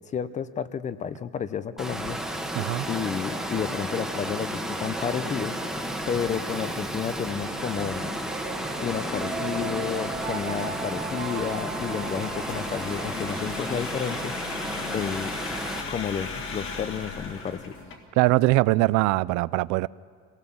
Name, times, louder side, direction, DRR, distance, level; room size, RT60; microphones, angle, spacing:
voice 1, 0.1-2.5 2.9-5.6 6.1-8.1 8.8-14.6 14.9-15.3 15.9-17.7, left 8 dB, 25° left, 0.5 m, -31 dB
Water, 1.8-15.8, right 1 dB, ahead, 1.2 m, -33 dB
sound 1, 2.3-18.0, left 4 dB, 45° left, 1.9 m, -39 dB
voice 2, 2.6-2.9 18.2-19.9, right 20 dB, 90° right, 0.5 m, -22 dB
sound 2, 3.3-18.1, right 6 dB, 30° right, 1.6 m, -42 dB
25.5 x 18.0 x 7.1 m
cardioid pair, 170°, 29 cm